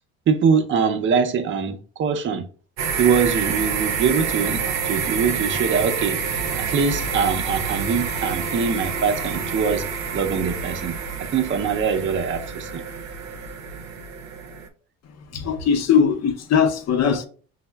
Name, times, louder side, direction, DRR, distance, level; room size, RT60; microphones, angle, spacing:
voice 1, 0.3-2.4 3.0-6.2 6.5-9.9 10.1-10.9 11.2-12.8, right 6 dB, 35° right, 0.5 m, -23 dB
sound 1, 2.8-14.7, right 6 dB, 85° right, 0.6 m, -28 dB
voice 2, 15.3-17.2, left 7 dB, 50° left, 0.6 m, -20 dB
5.2 x 2.0 x 2.2 m
supercardioid pair, 80°, 35 cm